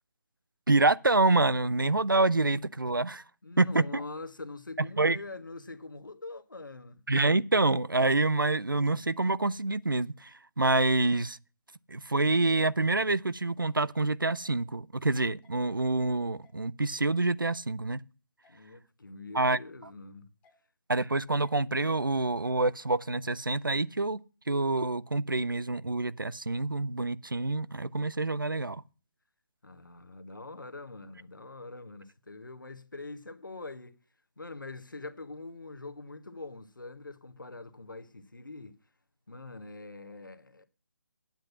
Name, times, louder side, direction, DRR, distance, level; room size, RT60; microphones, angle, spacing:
voice 1, 0.7-3.2 3.6-4.0 4.8-5.2 7.1-10.3 10.6-11.4 11.9-18.0 19.3-19.6 20.9-24.2 24.5-28.8, right 2 dB, 85° right, 0.6 m, -27 dB
voice 2, 3.4-7.0 18.5-20.3 29.6-34.0 34.4-38.8 39.3-40.7, left 3 dB, 75° left, 1.3 m, -44 dB
sound 1, 14.4-14.5 15.4-15.5 16.4-16.6 17.4-17.5 18.4-18.6 19.4-19.6 20.4-20.6 21.4-21.6 22.4-22.6, left 4 dB, 15° left, 1.7 m, -64 dB
8.9 x 7.8 x 5.8 m
figure-of-eight pair, 145°, 11 cm